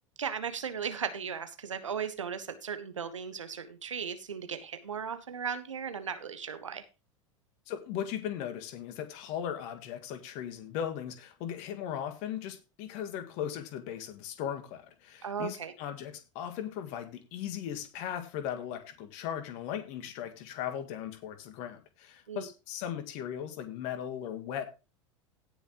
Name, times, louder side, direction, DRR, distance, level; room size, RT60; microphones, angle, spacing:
voice 1, 0.2-6.8 15.2-15.7 22.3-22.5, right 7 dB, 75° right, 10 dB, 1.3 m, -36 dB
voice 2, 7.7-24.7, left 9 dB, 45° left, 8 dB, 2.0 m, -38 dB
17.0 x 6.4 x 3.1 m, 0.30 s
figure-of-eight pair, 80°, 16 cm